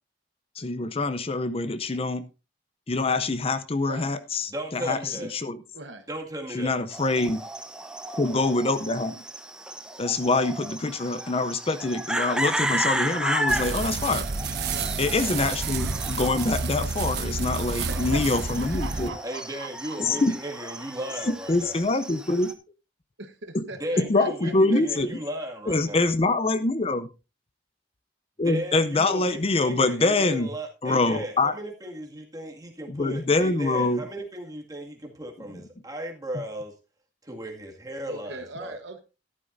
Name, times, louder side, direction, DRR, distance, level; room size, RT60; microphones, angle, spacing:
voice 1, 0.6-2.2 2.9-5.6 6.5-7.4 8.2-9.2 10.0-14.2 15.0-19.1 20.0-20.4 21.3-22.5 23.5-23.6 24.0-25.1 25.7-27.1 28.4-30.5 30.8-31.5 32.9-34.0, left 3 dB, 35° left, 0.6 m, -25 dB
voice 2, 3.8-4.1 5.7-6.1 12.1-12.3 14.7-15.0 17.9-20.2 23.2-24.5 38.1-39.0, right 2 dB, 85° right, 1.1 m, -40 dB
voice 3, 4.5-5.4 6.1-6.8 19.2-21.8 23.8-26.1 28.4-36.7 37.2-38.8, equal, 20° right, 2.0 m, -36 dB
sound 1, 6.9-22.5, right 1 dB, 5° right, 0.8 m, -34 dB
sound 2, 13.5-19.1, right 4 dB, 60° right, 0.9 m, -30 dB
13.0 x 11.0 x 2.6 m
head